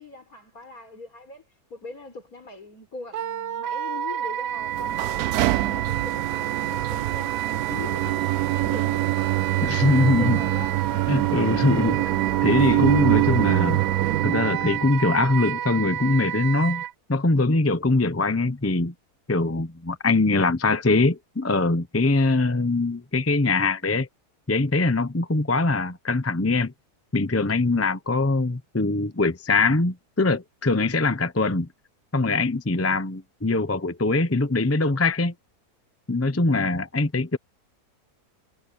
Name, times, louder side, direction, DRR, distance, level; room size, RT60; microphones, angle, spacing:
voice 1, 0.0-1.4 1.7-7.4 7.7-11.3, left 4 dB, 65° left, 4.6 m, -42 dB
Wind instrument woodwind instrument, 3.1-16.9, right 11 dB, 60° right, 0.7 m, -30 dB
sound 1, 4.6-14.9, right 17 dB, 75° right, 1.1 m, -24 dB
voice 2, 9.6-10.4 11.1-12.1 12.4-13.8 14.2-16.8 17.1-18.9 19.3-24.1 24.5-26.7 27.1-31.7 32.1-35.3 36.1-37.4, left 3 dB, 15° left, 0.7 m, -22 dB
omnidirectional pair, 1.6 m